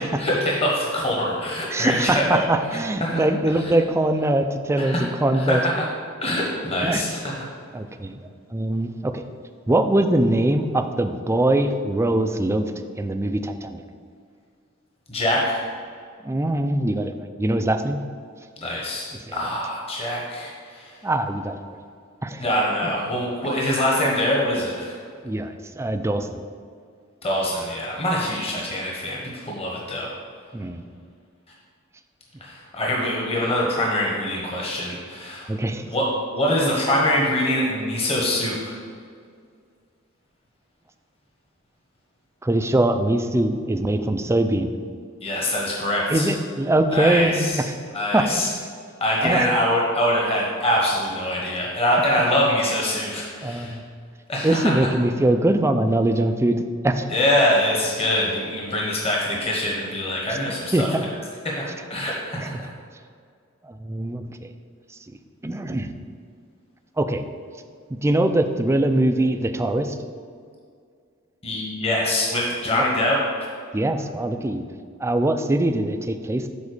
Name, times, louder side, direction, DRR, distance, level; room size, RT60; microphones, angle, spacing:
voice 1, 0.2-2.4 3.0-3.2 4.8-5.0 5.5-5.8 6.2-7.4 15.1-15.6 18.6-19.0 19.3-20.9 22.4-24.9 27.2-30.1 32.4-35.5 35.9-38.8 45.2-46.3 46.9-47.6 47.9-48.5 49.0-53.8 54.3-54.7 57.1-60.9 61.4-62.6 71.4-73.2, left 1 dB, 30° left, -3 dB, 1.2 m, -24 dB
voice 2, 1.7-5.6 6.8-7.0 7.7-9.2 9.7-12.7 13.0-13.8 16.2-18.0 19.1-19.4 21.0-21.6 22.2-22.4 22.8-22.9 25.2-26.4 30.5-30.8 35.5-35.8 42.4-44.7 46.1-47.7 48.1-48.3 49.2-49.5 53.4-53.8 54.4-57.1 60.3-60.4 60.7-61.1 61.7-61.8 62.4-62.5 63.6-64.5 65.1-65.2 65.4-65.9 67.0-67.3 68.0-70.0 72.7-72.9 73.7-74.6 75.0-76.5, right 1 dB, 15° right, 7 dB, 0.4 m, -22 dB
7.2 x 4.2 x 6.5 m, 2.2 s
head